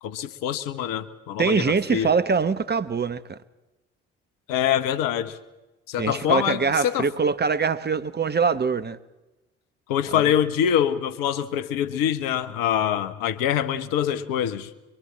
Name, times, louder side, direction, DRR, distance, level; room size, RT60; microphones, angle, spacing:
voice 1, 0.0-2.1 4.5-5.4 5.9-7.1 9.9-14.7, left 10 dB, 65° left, 1.3 m, -25 dB
voice 2, 1.4-3.4 6.0-9.0 10.1-10.2, right 5 dB, 25° right, 1.1 m, -23 dB
23.5 x 22.5 x 7.5 m
figure-of-eight pair, 45°, 36 cm